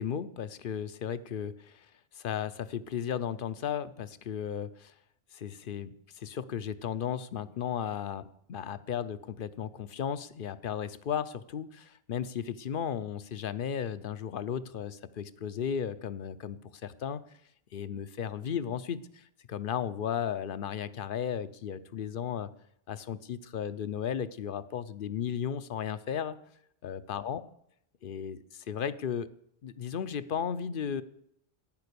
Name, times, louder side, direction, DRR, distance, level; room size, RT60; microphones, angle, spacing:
voice 1, 0.0-1.9 2.1-4.9 5.3-17.2 17.7-22.5 22.9-26.4 26.8-27.4 28.0-29.3 29.6-31.0, left 8 dB, 60° left, 15 dB, 0.8 m, -35 dB
10.5 x 9.4 x 6.8 m, 0.73 s
omnidirectional pair, 1.1 m